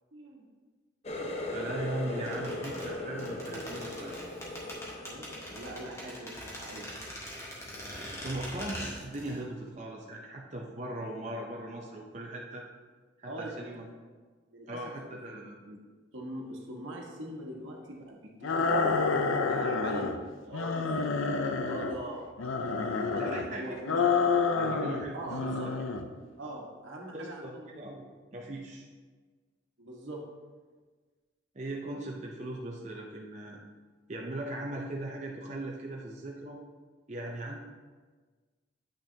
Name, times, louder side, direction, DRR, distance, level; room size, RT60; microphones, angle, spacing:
voice 1, 0.1-0.5 5.1-6.9 7.5-7.6 13.3-13.9 14.5-14.8 15.1-15.8 16.1-22.3 22.9-24.0 24.7-24.9 25.1-25.7 26.4-27.7 29.8-30.3, right 1 dB, 80° right, -1 dB, 1.3 m, -43 dB
Water tap faucet, 1.0-6.5 6.9-7.4 7.8-8.1 8.9-9.0, left 2 dB, 35° left, 0.6 m, -39 dB
voice 2, 1.5-4.2 8.2-12.7 13.2-13.9 14.7-15.6 23.2-24.1 24.5-25.6 27.1-28.9 31.5-33.6 34.1-36.6 37.1-37.6, right 1 dB, 35° right, -1 dB, 0.6 m, -39 dB
sound 1, 2.2-9.4 9.7-9.8, equal, 15° left, 1.2 m, -42 dB
sound 2, 18.4-20.2 20.5-22.0 22.4-23.4 23.8-25.0 25.3-26.0, left 4 dB, 90° left, 0.5 m, -28 dB
8.6 x 6.1 x 2.8 m, 1.4 s
head